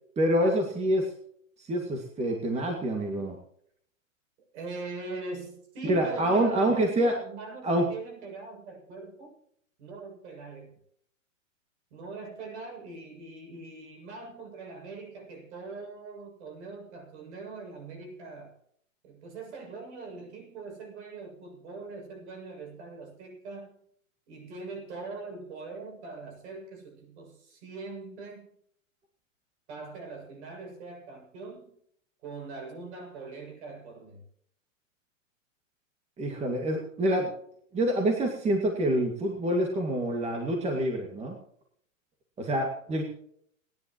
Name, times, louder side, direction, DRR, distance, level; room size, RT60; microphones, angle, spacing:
voice 1, 0.2-1.1 1.6-3.4 5.8-7.1 7.6-7.9 36.2-37.3 37.7-41.4 42.4-43.0, right 1 dB, 15° right, 2 dB, 2.2 m, -26 dB
voice 2, 4.5-9.4 9.8-10.7 11.9-18.5 19.0-23.7 24.3-28.5 29.7-31.7 32.2-34.2, right 3 dB, 55° right, 3 dB, 7.4 m, -42 dB
29.5 x 10.5 x 3.1 m, 0.67 s
hypercardioid pair, 130°, 40 cm